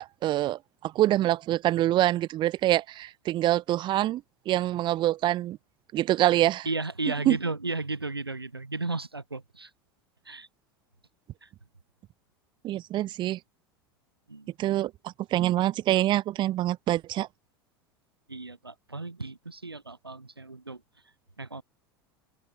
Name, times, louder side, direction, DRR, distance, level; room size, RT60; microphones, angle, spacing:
voice 1, 0.0-5.6 5.9-6.6 7.3-7.4 12.6-13.4 14.6-17.3, right 14 dB, 40° right, 1.3 m, -25 dB
voice 2, 6.7-9.7 10.3-10.5 11.4-11.5 14.3-14.5 18.3-20.8 21.4-21.6, right 3 dB, 90° right, 5.4 m, -34 dB
open air
figure-of-eight pair, 80°, 12 cm